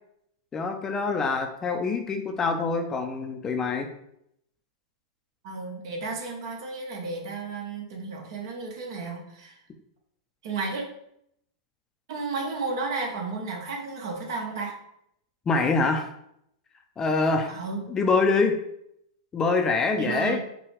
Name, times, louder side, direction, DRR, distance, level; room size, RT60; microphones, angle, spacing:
voice 1, 0.5-3.9 15.5-16.1 17.0-17.5 17.8-18.6 19.3-20.4, left 4 dB, 20° left, 5 dB, 0.5 m, -25 dB
voice 2, 5.4-9.6 10.4-10.8 12.1-14.7 17.5-17.8 20.0-20.4, right 3 dB, 65° right, 1 dB, 1.2 m, -33 dB
5.6 x 2.3 x 3.4 m, 0.75 s
hypercardioid pair, 120°, 2 cm